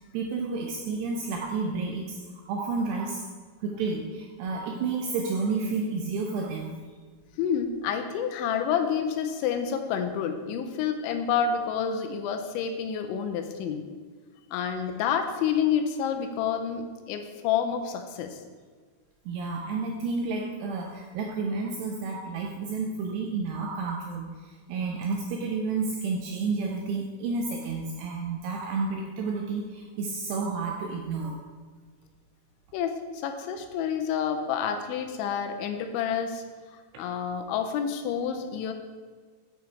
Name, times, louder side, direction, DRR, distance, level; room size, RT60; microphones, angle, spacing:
voice 1, 0.0-3.2 3.6-6.8 19.3-31.4, right 4 dB, 85° right, 2 dB, 2.4 m, -31 dB
voice 2, 7.4-13.8 14.5-18.4 32.7-33.0 33.2-36.4 36.7-38.7, left 7 dB, 85° left, 6 dB, 2.9 m, -29 dB
8.6 x 5.4 x 4.5 m, 1.5 s
omnidirectional pair, 5.4 m